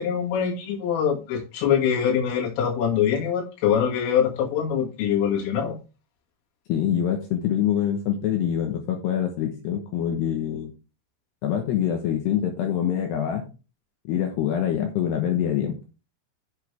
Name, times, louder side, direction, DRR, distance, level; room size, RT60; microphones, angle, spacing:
voice 1, 0.0-5.8, left 8 dB, 90° left, -2 dB, 5.1 m, -24 dB
voice 2, 6.7-10.7 11.4-13.5 14.1-15.8, left 9 dB, 70° left, 3 dB, 2.9 m, -25 dB
8.4 x 7.8 x 3.5 m, 0.31 s
omnidirectional pair, 5.6 m